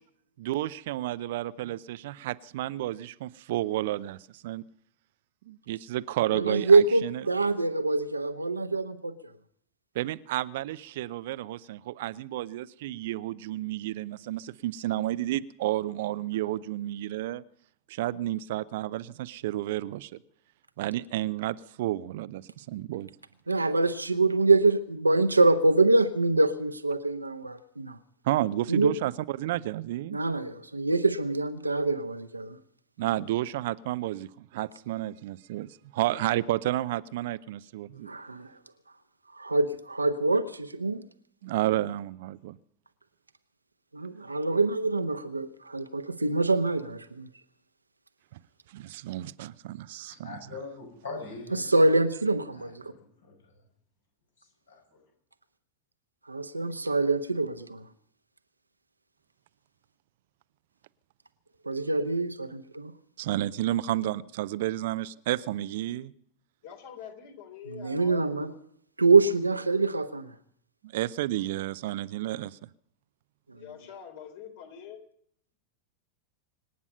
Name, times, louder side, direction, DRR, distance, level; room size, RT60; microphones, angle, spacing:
voice 1, 0.4-4.6 5.5-7.2 9.9-17.4 17.9-20.1 20.8-23.1 28.2-30.2 33.0-38.1 41.4-42.6 48.7-50.4 63.2-66.1 70.8-72.6, right 15 dB, 55° right, 0.5 m, -31 dB
voice 2, 6.3-9.1 23.5-28.0 28.7-28.9 30.1-32.6 38.1-38.5 39.3-41.0 43.9-47.3 51.5-52.9 56.3-57.8 61.7-62.9 67.7-68.5 69.0-70.3, right 3 dB, 80° right, 1.0 m, -25 dB
voice 3, 50.2-51.6 52.5-53.0 53.2-53.3 54.7-54.8, left 3 dB, 70° left, 7.3 m, -41 dB
voice 4, 66.6-68.3 73.6-75.0, left 8 dB, 55° left, 3.6 m, -45 dB
25.5 x 9.6 x 5.5 m
figure-of-eight pair, 90°, 0 cm